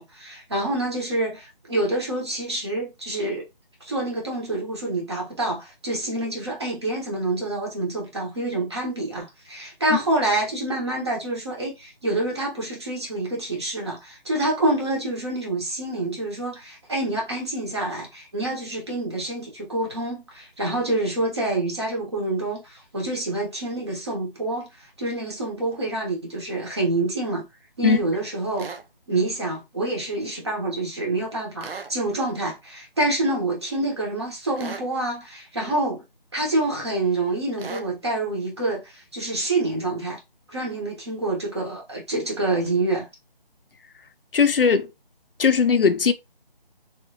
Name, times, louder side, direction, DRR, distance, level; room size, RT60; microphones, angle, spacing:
voice 1, 0.0-3.4 3.8-27.4 27.8-28.7 29.1-36.0 36.3-40.2 40.5-43.1, right 2 dB, 30° right, 1.2 m, -27 dB
sound 1, 28.6-28.8 31.6-31.9 34.6-34.9 37.6-37.9, right 5 dB, 75° right, 0.6 m, -36 dB
voice 2, 44.3-44.9 45.4-46.1, left 6 dB, 70° left, 0.5 m, -18 dB
3.2 x 3.0 x 2.8 m
figure-of-eight pair, 170°, 29 cm